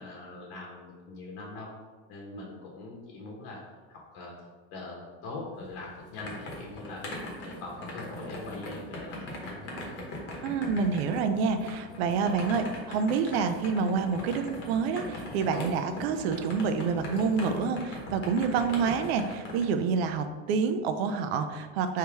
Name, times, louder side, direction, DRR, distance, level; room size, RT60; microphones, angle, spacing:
voice 1, 0.0-1.7 2.1-3.6 3.9-4.3 4.7-7.0 7.4-10.0, left 2 dB, 65° left, -2 dB, 1.0 m, -42 dB
sound 1, 5.6-19.6, left 1 dB, 35° left, 0.9 m, -40 dB
voice 2, 10.4-22.0, right 5 dB, 80° right, 8 dB, 0.5 m, -28 dB
3.6 x 2.8 x 4.5 m, 1.4 s
supercardioid pair, 150°, 31 cm